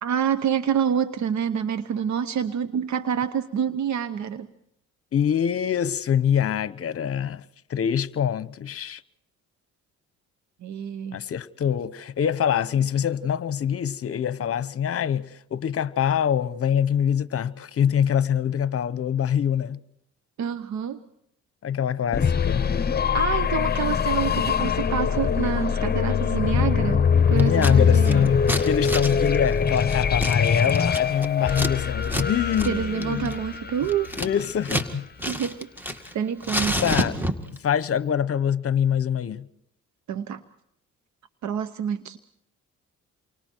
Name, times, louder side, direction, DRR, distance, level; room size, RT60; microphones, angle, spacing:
voice 1, 0.0-4.5 10.6-11.2 20.4-21.0 23.1-28.3 32.7-34.1 35.3-35.6 35.8-36.9 40.1-40.4 41.4-42.2, right 8 dB, 70° right, 1.0 m, -27 dB
voice 2, 5.1-7.4 7.7-9.0 11.1-19.8 21.6-22.7 27.3-33.4 34.2-35.1 36.8-37.2 37.6-39.5, left 8 dB, 50° left, 1.0 m, -24 dB
sound 1, 22.1-34.8, left 7 dB, 30° left, 1.0 m, -23 dB
Scissors, 27.4-27.7 28.0-31.7 32.0-32.3 32.5-32.7 33.0-34.9 35.2-36.1 36.4-37.6, equal, 5° right, 2.1 m, -29 dB
29.0 x 24.5 x 4.6 m
cardioid pair, 90°, 30 cm